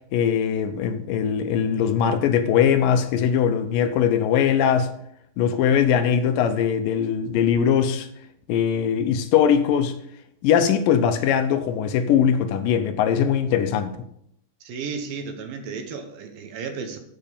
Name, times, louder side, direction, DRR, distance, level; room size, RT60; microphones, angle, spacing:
voice 1, 0.1-4.9 5.4-8.1 8.5-9.9 10.4-13.9, left 8 dB, 75° left, 2.4 m, -21 dB
voice 2, 14.6-17.0, right 5 dB, 75° right, 2.8 m, -33 dB
7.9 x 7.5 x 6.8 m
omnidirectional pair, 4.1 m